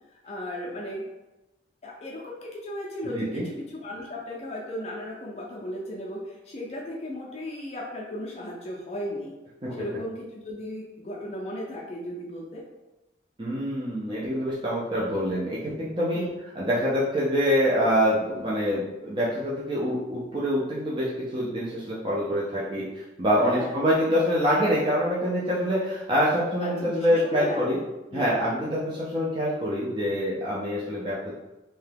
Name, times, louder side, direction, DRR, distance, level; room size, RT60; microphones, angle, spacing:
voice 1, 0.2-1.0 1.8-9.3 9.8-12.6 16.1-16.3 23.4-23.8 26.6-27.8 28.1-28.4, left 1 dB, 35° left, -3 dB, 0.4 m, -36 dB
voice 2, 3.1-3.4 9.6-9.8 13.4-16.2 16.5-27.8 28.1-31.3, equal, 25° right, -7 dB, 0.4 m, -25 dB
2.7 x 2.2 x 3.3 m, 1.0 s
head